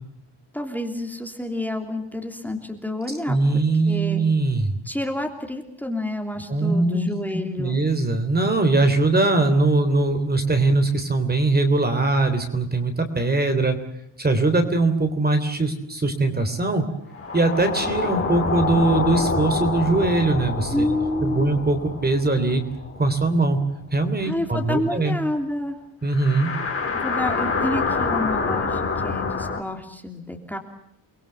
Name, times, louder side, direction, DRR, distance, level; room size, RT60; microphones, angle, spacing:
voice 1, 0.5-3.4 3.8-4.2 4.8-7.8 20.7-21.5 24.2-25.8 26.9-30.6, left 1 dB, 5° left, 4 dB, 3.2 m, -29 dB
voice 2, 3.3-4.8 6.5-7.1 7.6-13.8 14.2-16.8 17.3-20.9 21.2-22.6 23.0-23.6 23.9-25.2 26.0-26.5, right 2 dB, 20° right, 7 dB, 3.5 m, -21 dB
sound 1, 17.1-23.7 24.0-24.1 26.1-29.6, left 4 dB, 30° left, 3.9 m, -27 dB
30.0 x 22.0 x 7.0 m, 0.77 s
wide cardioid pair, 160°, 46 cm